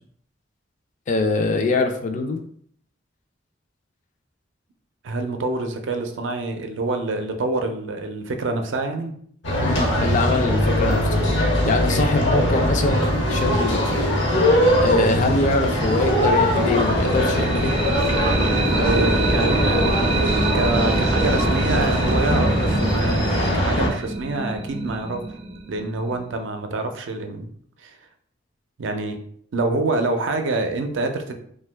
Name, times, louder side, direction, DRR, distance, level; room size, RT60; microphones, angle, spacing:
voice 1, 1.1-2.4 9.6-11.2 11.6-14.0 14.8-17.7, left 3 dB, 40° left, 5 dB, 0.3 m, -23 dB
voice 2, 5.0-9.1 18.8-25.2 25.7-27.5 27.8-27.9 28.8-29.2 29.5-31.3, right 2 dB, 85° right, 5 dB, 0.5 m, -26 dB
sound 1, 9.4-23.9, equal, 75° left, 0.8 m, -21 dB
sound 2, 16.7-26.5, right 2 dB, 30° right, 0.4 m, -26 dB
2.9 x 2.2 x 3.3 m, 0.62 s
head